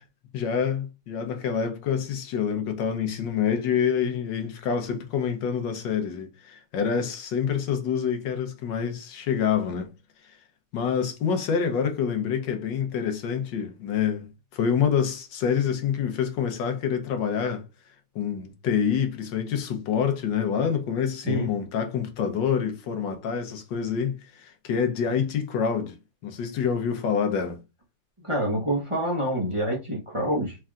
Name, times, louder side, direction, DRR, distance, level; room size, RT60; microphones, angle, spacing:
voice 1, 0.3-9.9 10.7-14.3 14.5-17.6 18.1-26.0 26.2-27.6, left 7 dB, 80° left, 1.5 m, -27 dB
voice 2, 28.2-30.6, right 1 dB, 20° right, 0.9 m, -27 dB
4.5 x 3.4 x 2.4 m
omnidirectional pair, 1.9 m